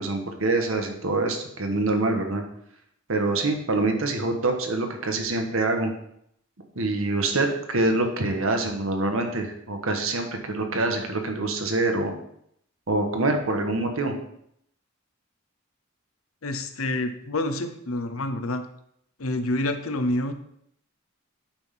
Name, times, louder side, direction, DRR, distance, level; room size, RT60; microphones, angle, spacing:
voice 1, 0.0-2.4 3.1-5.9 6.7-12.1 12.9-14.2, right 2 dB, 75° right, 4 dB, 1.3 m, -25 dB
voice 2, 16.4-18.6 19.2-20.3, left 1 dB, 90° left, 8 dB, 0.8 m, -27 dB
8.7 x 3.6 x 5.7 m, 0.72 s
head